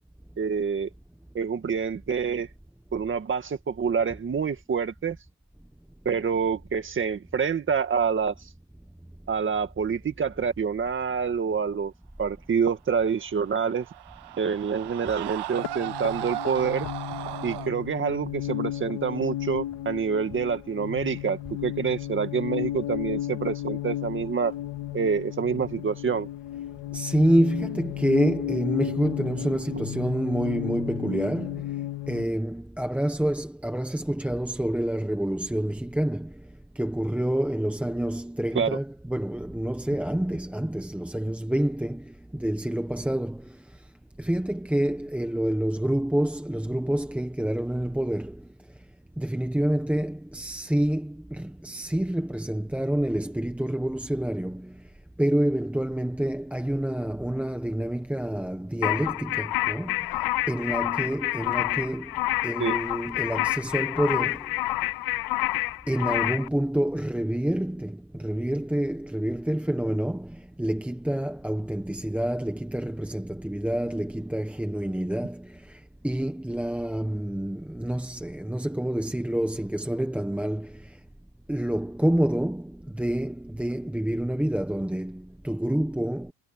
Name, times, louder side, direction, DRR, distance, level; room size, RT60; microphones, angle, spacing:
voice 1, 0.4-0.9 1.3-2.5 2.9-5.2 6.1-8.3 9.3-11.9 12.2-13.9 14.4-16.9 17.4-24.5 24.9-26.3 38.6-38.8 62.6-62.8, right 6 dB, 30° right, 2.0 m, -27 dB
Screaming, 13.2-17.7, right 14 dB, 70° right, 1.8 m, -36 dB
sound 1, 15.5-32.3, left 13 dB, 90° left, 2.3 m, -34 dB
voice 2, 26.9-31.7 32.1-36.4 36.7-43.5 44.2-48.4 49.2-54.7 55.2-60.0 60.5-62.1 62.4-64.5 65.9-81.0 81.5-86.3, right 1 dB, 5° right, 1.1 m, -28 dB
sound 2, 58.8-66.5, left 17 dB, 60° left, 0.7 m, -28 dB
cardioid pair, 150°, 41 cm